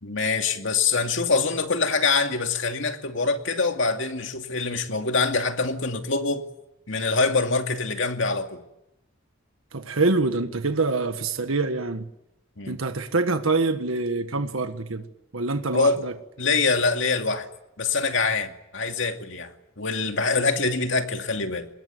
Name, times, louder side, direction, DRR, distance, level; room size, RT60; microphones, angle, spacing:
voice 1, 0.0-6.4 6.9-8.6 12.6-12.8 15.7-16.0 16.4-17.5 17.8-19.5 19.8-21.7, left 4 dB, 65° left, 5 dB, 2.5 m, -24 dB
voice 2, 9.7-12.1 12.7-15.1 15.3-16.1, right 3 dB, 80° right, 8 dB, 1.5 m, -25 dB
25.0 x 21.0 x 9.5 m, 0.87 s
head